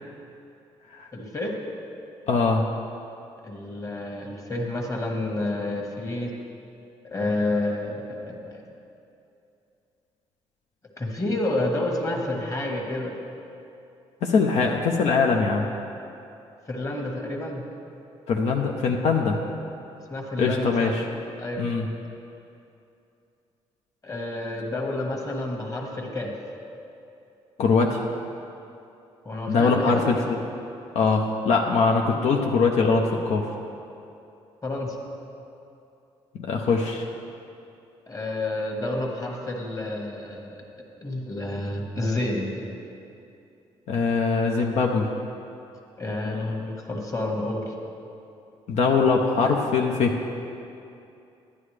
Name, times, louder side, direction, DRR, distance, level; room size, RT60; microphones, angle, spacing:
voice 1, 1.1-1.6 3.4-6.3 7.0-8.6 11.0-13.1 16.7-17.7 20.1-20.9 21.4-21.7 24.0-26.3 29.2-30.0 34.6-35.0 38.1-40.6 41.0-42.5 46.0-47.7, left 2 dB, 30° left, 1 dB, 1.5 m, -29 dB
voice 2, 2.3-2.6 14.2-15.7 18.3-19.4 20.4-21.1 21.6-21.9 27.6-28.0 29.5-30.4 30.9-33.5 36.4-37.0 43.9-45.1 48.7-50.2, left 4 dB, 70° left, 1 dB, 0.7 m, -22 dB
11.0 x 9.9 x 3.3 m, 2.7 s
cardioid pair, 80°, 12 cm